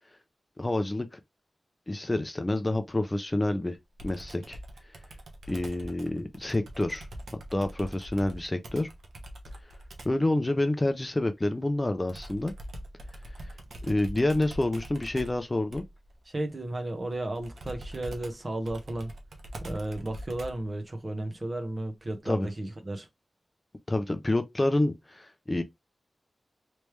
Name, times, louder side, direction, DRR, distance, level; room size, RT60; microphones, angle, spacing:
voice 1, 0.6-1.2 1.9-3.8 4.0-4.6 5.5-7.1 7.5-8.9 10.0-12.5 13.4-13.6 13.8-15.8 22.3-22.5 23.9-25.6, left 1 dB, 20° left, 0.5 m, -28 dB
Computer keyboard, 4.0-10.3 12.1-20.7, right 1 dB, 85° right, 0.9 m, -43 dB
voice 2, 16.3-19.1 19.6-23.1, right 1 dB, 35° right, 1.0 m, -34 dB
3.3 x 3.1 x 3.1 m
wide cardioid pair, 110°, 0 cm